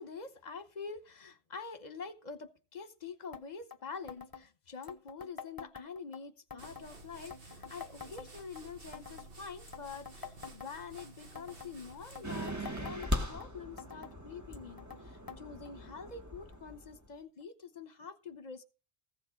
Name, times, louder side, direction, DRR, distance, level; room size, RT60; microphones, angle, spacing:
voice 1, 0.0-18.6, left 5 dB, 45° left, 11 dB, 1.1 m, -46 dB
sound 1, 3.3-3.4 3.7-3.8 4.1-4.4 4.8-6.2 6.5-6.9 7.3-8.6 8.9-9.3 9.7-11.0 11.4-11.7 12.1-13.5 13.8-14.1 14.5-15.0 15.3-15.4 15.7-15.8 16.5-16.6 17.4-17.5, left 6 dB, 25° left, 0.7 m, -47 dB
sound 2, 6.6-13.1, right 2 dB, 65° right, 1.9 m, -53 dB
sound 3, 12.2-17.1, left 1 dB, 15° right, 1.6 m, -39 dB
15.0 x 7.2 x 5.2 m, 0.33 s
omnidirectional pair, 1.0 m